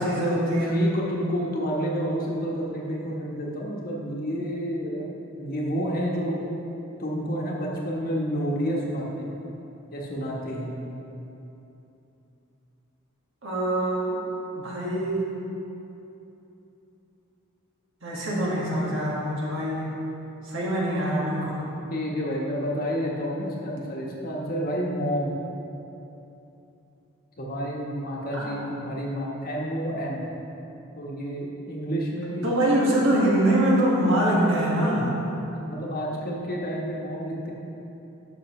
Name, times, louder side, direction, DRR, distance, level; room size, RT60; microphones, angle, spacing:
voice 1, 0.0-0.8 13.4-14.2 14.5-15.3 18.0-19.9 20.4-21.7 28.3-28.5 32.4-35.1, right 1 dB, 60° right, -5 dB, 1.8 m, -24 dB
voice 2, 0.7-5.0 5.3-6.4 7.0-9.3 9.9-10.7 21.9-25.3 27.4-30.2 31.0-32.6 35.5-37.5, equal, 40° left, -3 dB, 1.2 m, -29 dB
12.0 x 6.5 x 3.2 m, 3.0 s
head